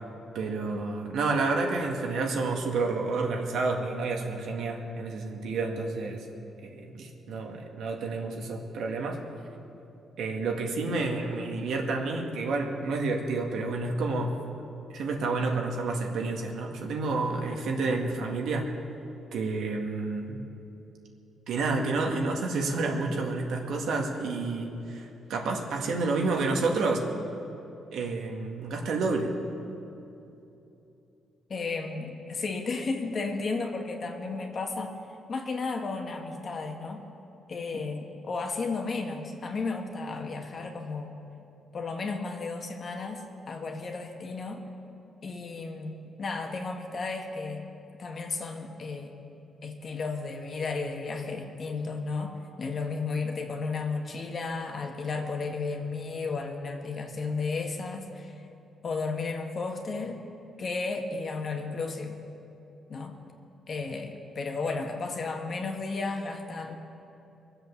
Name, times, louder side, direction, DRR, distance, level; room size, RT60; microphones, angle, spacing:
voice 1, 0.3-6.3 6.6-9.2 10.2-14.4 14.9-18.7 19.3-20.3 21.5-27.0 27.9-29.3, right 3 dB, 80° right, 1 dB, 1.9 m, -29 dB
voice 2, 31.5-34.9 35.3-37.0 37.5-41.2 41.7-44.6 45.2-47.6 48.0-49.2 49.6-58.3 58.8-60.2 60.6-62.2 62.9-63.2 63.7-66.8, left 4 dB, 40° left, 3 dB, 1.6 m, -33 dB
23.5 x 7.9 x 7.1 m, 2.9 s
cardioid pair, 125°, 0 cm